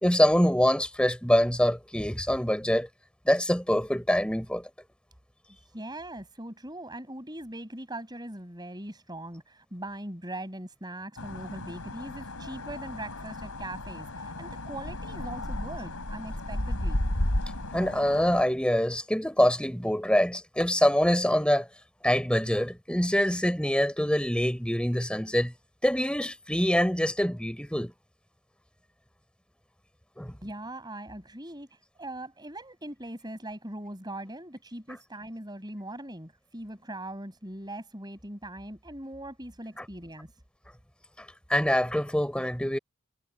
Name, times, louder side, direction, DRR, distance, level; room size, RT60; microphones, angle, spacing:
voice 1, 0.0-2.9 3.2-4.7 17.7-21.7 22.0-25.5 25.8-27.9 30.2-30.4 39.8-39.9 41.5-42.8, equal, 5° left, 4.6 m, -25 dB
voice 2, 5.7-17.0 30.4-40.3, right 1 dB, 20° right, 6.8 m, -41 dB
sound 1, 11.2-18.4, left 1 dB, 90° left, 3.7 m, -33 dB
head